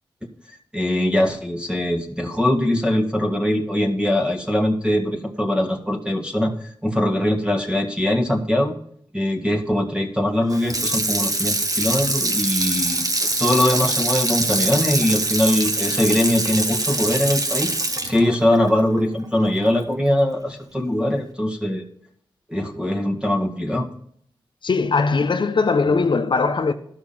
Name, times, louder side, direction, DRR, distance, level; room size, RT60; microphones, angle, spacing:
voice 1, 0.7-8.7 9.1-17.7 18.0-21.8 22.5-23.9, left 1 dB, 10° right, 1.8 m, -22 dB
Water tap faucet / Sink (filling or washing), 10.5-19.7 20.1-20.2, right 2 dB, 40° right, 1.5 m, -24 dB
voice 2, 24.6-26.7, left 4 dB, 55° left, 0.7 m, -20 dB
12.5 x 6.0 x 5.7 m
cardioid pair, 65°, 9 cm